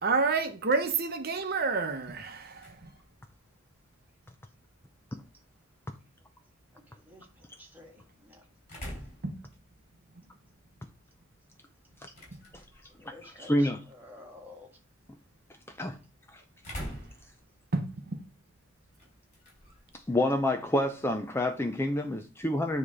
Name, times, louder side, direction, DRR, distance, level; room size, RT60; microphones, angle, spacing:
voice 1, 0.0-2.9 9.2-9.3 17.7-18.2, right 4 dB, 50° right, 0.9 m, -29 dB
sound 1, 1.8-21.7, equal, 35° left, 4.2 m, -50 dB
voice 2, 6.9-7.3 7.6-8.4 13.0-14.7, left 2 dB, 10° right, 1.6 m, -51 dB
voice 3, 13.2-13.8 15.8-16.0 16.3-16.4 20.1-22.8, left 1 dB, 10° left, 0.5 m, -28 dB
9.5 x 3.2 x 4.9 m
head